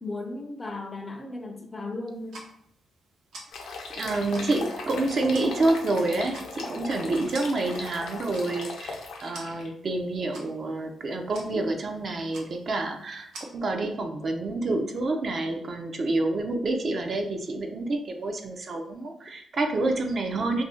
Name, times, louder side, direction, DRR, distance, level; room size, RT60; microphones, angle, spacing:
voice 1, 0.0-2.4, left 2 dB, 25° left, 4 dB, 0.4 m, -36 dB
sound 1, 2.1-13.4, right 2 dB, 80° right, 0.8 m, -49 dB
sound 2, 3.5-9.7, left 4 dB, 80° left, 0.5 m, -38 dB
voice 2, 4.0-20.6, right 2 dB, 45° right, 4 dB, 0.4 m, -28 dB
2.6 x 2.0 x 3.6 m, 0.73 s
cardioid pair, 115°, 0 cm